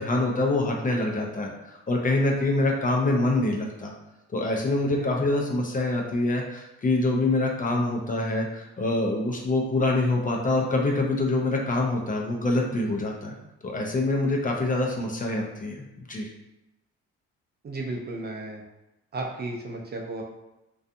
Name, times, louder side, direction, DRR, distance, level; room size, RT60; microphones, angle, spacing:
voice 1, 0.0-1.5 1.9-3.9 4.3-13.4 13.6-16.3, left 2 dB, 30° left, 0 dB, 0.4 m, -25 dB
voice 2, 17.6-18.6 19.1-20.2, right 2 dB, 35° right, 0 dB, 0.5 m, -34 dB
2.4 x 2.3 x 2.6 m, 0.94 s
cardioid pair, 90°, 30 cm